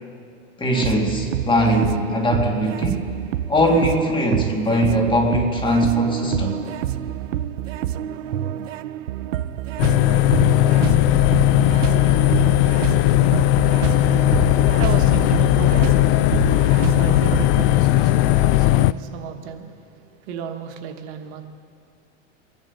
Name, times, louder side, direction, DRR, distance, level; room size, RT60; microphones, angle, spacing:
voice 1, 0.6-3.1 3.5-6.6, equal, 15° left, 1 dB, 2.1 m, -20 dB
sound 1, 0.7-17.7, right 11 dB, 85° right, 0.6 m, -28 dB
sound 2, 9.8-18.9, left 15 dB, 55° left, 0.4 m, -17 dB
voice 2, 14.8-21.5, right 7 dB, 60° right, 6 dB, 1.3 m, -34 dB
23.5 x 10.5 x 4.0 m, 2.3 s
hypercardioid pair, 115°, 37 cm